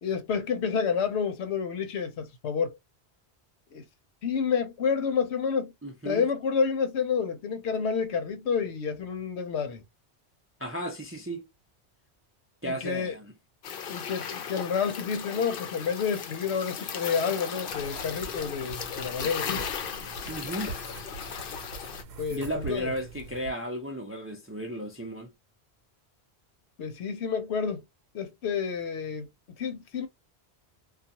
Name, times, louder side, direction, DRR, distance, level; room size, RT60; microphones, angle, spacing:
voice 1, 0.0-2.7 3.7-3.8 4.2-5.7 6.0-9.8 12.6-13.2 13.9-19.6 22.2-22.9 26.8-27.8 28.1-29.3 29.6-30.1, left 6 dB, 85° left, 1.0 m, -29 dB
voice 2, 5.8-6.2 10.6-11.5 12.6-13.3 20.3-20.7 22.3-25.3, right 1 dB, 20° right, 0.4 m, -34 dB
sound 1, 13.6-22.0, left 7 dB, 60° left, 0.7 m, -36 dB
sound 2, 17.7-23.5, right 4 dB, 75° right, 0.9 m, -43 dB
2.4 x 2.2 x 2.8 m
omnidirectional pair, 1.1 m